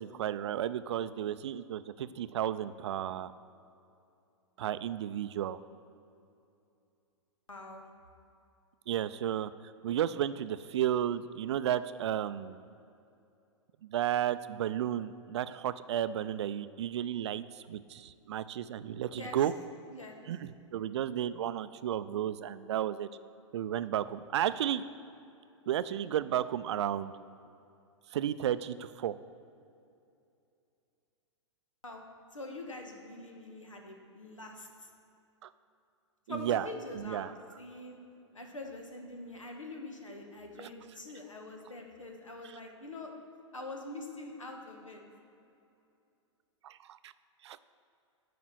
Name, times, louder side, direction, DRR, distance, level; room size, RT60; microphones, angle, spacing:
voice 1, 0.0-3.3 4.6-5.6 8.9-9.5 9.8-12.6 13.8-19.5 20.3-23.1 23.5-24.8 25.7-27.1 28.1-29.1 35.4-35.5 36.3-36.7 36.9-37.3 40.6-40.7 46.6-47.1 47.4-47.6, right 11 dB, 65° right, 14 dB, 0.4 m, -33 dB
voice 2, 7.5-7.8 19.2-19.4 19.9-20.2 31.8-32.0 32.3-34.9 36.3-38.0 38.3-43.1 43.5-45.0, left 2 dB, 90° left, 2 dB, 1.3 m, -44 dB
9.4 x 5.0 x 6.2 m, 2.7 s
figure-of-eight pair, 110°, 16 cm